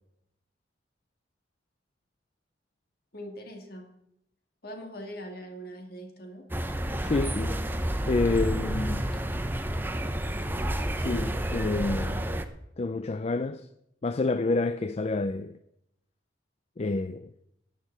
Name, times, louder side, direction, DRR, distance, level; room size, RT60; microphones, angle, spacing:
voice 1, 3.1-3.9 4.6-6.4, equal, 55° left, 2.3 m, -41 dB
sound 1, 6.5-12.4, right 1 dB, 10° right, 0.7 m, -30 dB
voice 2, 7.0-7.6 8.1-9.2 11.0-12.4 12.8-13.7 14.0-15.6 16.8-17.3, left 3 dB, 35° left, 0.4 m, -28 dB
11.0 x 9.9 x 7.2 m
head